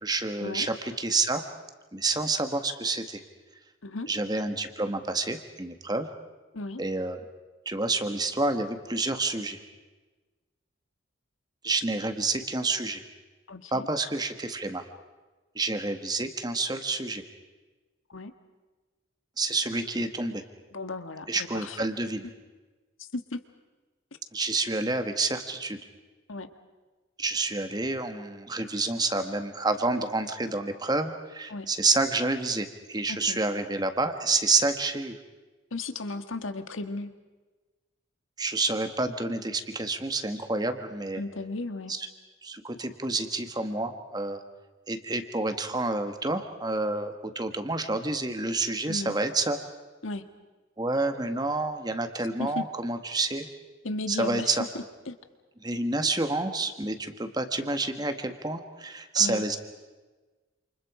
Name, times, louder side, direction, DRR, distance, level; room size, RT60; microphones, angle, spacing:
voice 1, 0.0-1.4 1.9-3.2 4.1-6.1 6.8-7.2 7.7-9.6 11.6-13.0 13.7-14.8 15.6-17.2 19.4-20.4 21.3-22.3 24.3-25.8 27.2-35.2 38.4-41.2 41.9-42.1 42.4-44.4 44.9-49.6 50.8-53.5 54.1-54.6 55.6-59.6, right 3 dB, 20° right, 7 dB, 1.6 m, -29 dB
voice 2, 13.5-13.9 18.1-18.3 20.7-21.9 23.0-23.4 26.3-26.5 31.5-31.7 33.1-33.4 35.7-37.1 41.2-41.9 48.9-49.1 50.0-50.2 52.4-52.6 53.8-55.2 59.2-59.5, left 2 dB, 85° left, 9 dB, 1.6 m, -35 dB
28.5 x 28.5 x 5.0 m, 1.3 s
head